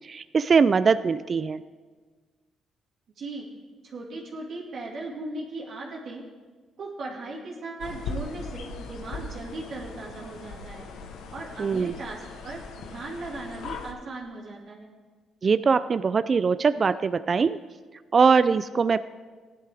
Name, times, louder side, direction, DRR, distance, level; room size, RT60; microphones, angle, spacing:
voice 1, 0.0-1.6 11.6-11.9 15.4-17.6 18.1-19.0, right 5 dB, 40° right, 13 dB, 0.3 m, -22 dB
voice 2, 3.2-3.5 3.8-6.2 6.8-10.9 11.3-14.9, right 2 dB, 60° right, -3 dB, 2.3 m, -38 dB
sound 1, 7.8-13.9, left 4 dB, 85° left, 1.0 m, -39 dB
16.0 x 11.0 x 3.5 m, 1.4 s
cardioid pair, 90°, 0 cm